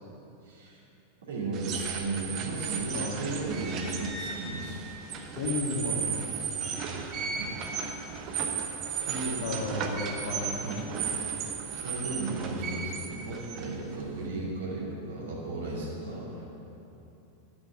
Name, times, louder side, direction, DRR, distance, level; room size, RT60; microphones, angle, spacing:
voice 1, 0.4-0.8 1.3-4.8 7.4-7.5 9.0-9.4 10.6-10.8 11.8-16.5, right 2 dB, 65° right, -6 dB, 2.7 m, -35 dB
sound 1, 1.5-14.3, right 6 dB, 35° right, 1.1 m, -35 dB
voice 2, 5.4-6.1 9.4-10.5, left 3 dB, 60° left, -1 dB, 1.9 m, -32 dB
11.0 x 7.2 x 7.2 m, 2.9 s
figure-of-eight pair, 90°, 0 cm